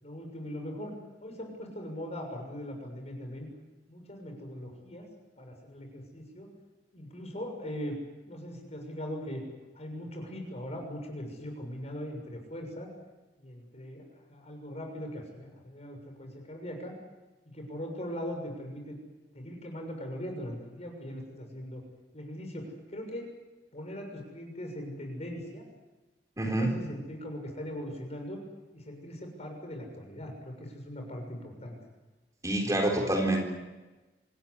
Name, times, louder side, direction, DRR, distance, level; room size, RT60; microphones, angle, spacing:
voice 1, 0.0-0.9 1.2-3.5 3.9-5.1 5.4-6.5 6.9-9.4 9.7-12.9 13.4-17.0 17.5-19.0 19.3-21.8 22.1-23.3 23.7-25.6 26.4-28.4 28.7-31.8, equal, 40° left, 3 dB, 6.7 m, -40 dB
voice 2, 26.4-26.7 32.4-33.4, right 1 dB, 20° right, 2 dB, 4.0 m, -27 dB
26.5 x 16.0 x 9.9 m, 1.1 s
head